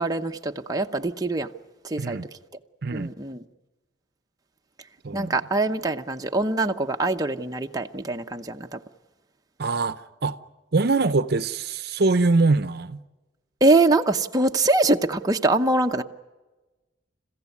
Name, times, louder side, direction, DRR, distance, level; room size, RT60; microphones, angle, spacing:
voice 1, 0.0-1.5 1.8-2.2 2.9-3.4 5.1-8.8 13.6-16.0, right 2 dB, 20° right, 0.8 m, -23 dB
voice 2, 5.0-5.4 9.6-10.4 10.7-13.0, right 3 dB, 60° right, 0.7 m, -23 dB
29.5 x 15.5 x 9.5 m
head